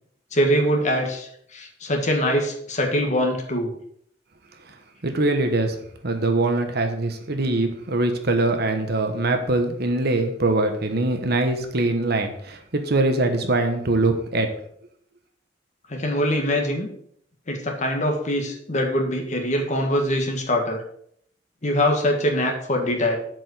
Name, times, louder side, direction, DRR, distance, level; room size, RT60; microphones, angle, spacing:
voice 1, 0.3-3.7 15.9-16.9 17.5-20.8 21.6-23.2, equal, 40° left, 2 dB, 1.8 m, -23 dB
voice 2, 5.0-5.7 6.0-14.5, right 2 dB, 55° right, 6 dB, 1.2 m, -22 dB
7.6 x 5.2 x 6.6 m, 0.67 s
head